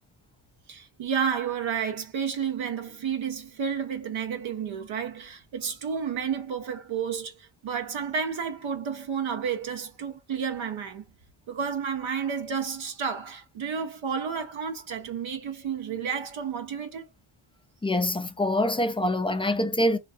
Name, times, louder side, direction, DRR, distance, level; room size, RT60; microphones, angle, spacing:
voice 1, 0.7-11.0 11.5-17.1, right 7 dB, 70° right, 0.7 m, -31 dB
voice 2, 17.8-20.0, left 1 dB, 10° left, 0.3 m, -25 dB
2.4 x 2.3 x 2.4 m
cardioid pair, 70°, 49 cm